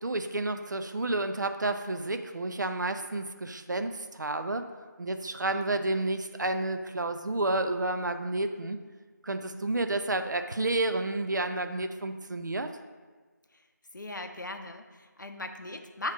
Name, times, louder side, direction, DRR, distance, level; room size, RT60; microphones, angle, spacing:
voice 1, 0.0-4.6 5.0-8.8 9.2-12.7, right 2 dB, 70° right, 7 dB, 0.5 m, -30 dB
voice 2, 13.9-16.1, left 2 dB, 75° left, 6 dB, 0.6 m, -38 dB
7.3 x 2.9 x 4.6 m, 1.4 s
figure-of-eight pair, 170°, 10 cm